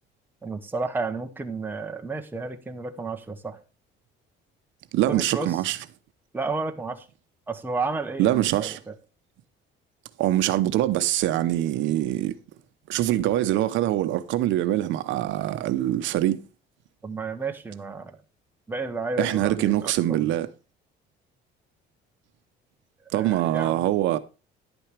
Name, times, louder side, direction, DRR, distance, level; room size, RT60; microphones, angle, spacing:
voice 1, 0.4-3.6 5.1-5.6 6.3-7.1 7.5-8.9 17.0-18.2 18.7-20.3 23.1-23.8, right 3 dB, 10° right, 1.0 m, -32 dB
voice 2, 4.9-5.8 8.2-8.8 10.2-12.3 12.9-16.4 19.2-20.5 23.1-24.2, right 14 dB, 70° right, 0.8 m, -24 dB
11.0 x 9.0 x 3.3 m
cardioid pair, 165°, 20 cm